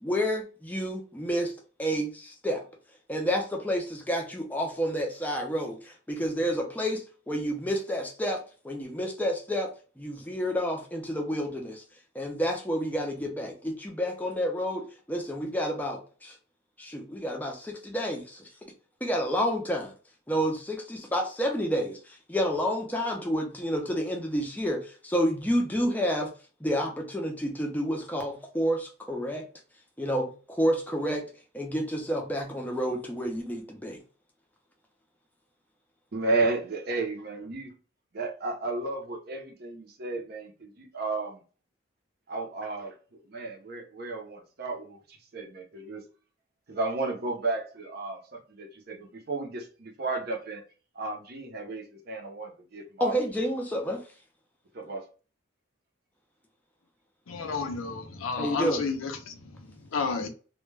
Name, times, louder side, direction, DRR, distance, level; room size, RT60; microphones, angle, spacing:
voice 1, 0.0-1.5 1.8-2.6 3.1-9.7 10.0-11.8 12.1-16.3 16.8-18.5 19.0-19.9 20.3-26.3 26.6-29.4 30.0-31.3 31.5-34.0 53.0-54.0 58.4-58.8, equal, 10° left, 0.4 m, -29 dB
voice 2, 36.1-37.7 38.1-41.4 42.3-46.0 46.7-50.6 50.9-53.4 54.7-55.0, right 3 dB, 50° right, 0.6 m, -33 dB
voice 3, 57.3-60.3, left 4 dB, 85° left, 0.5 m, -32 dB
2.2 x 2.1 x 3.1 m
head